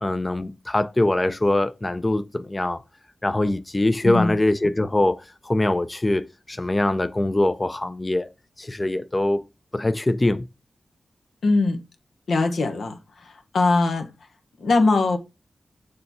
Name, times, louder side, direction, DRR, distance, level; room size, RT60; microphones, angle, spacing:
voice 1, 0.0-2.8 3.2-8.3 8.6-9.5 9.7-10.5, left 1 dB, 25° left, 0.5 m, -23 dB
voice 2, 11.4-11.8 12.3-13.0 13.5-14.1 14.6-15.2, left 3 dB, 85° left, 1.2 m, -20 dB
6.8 x 3.3 x 5.7 m
wide cardioid pair, 75°, 0 cm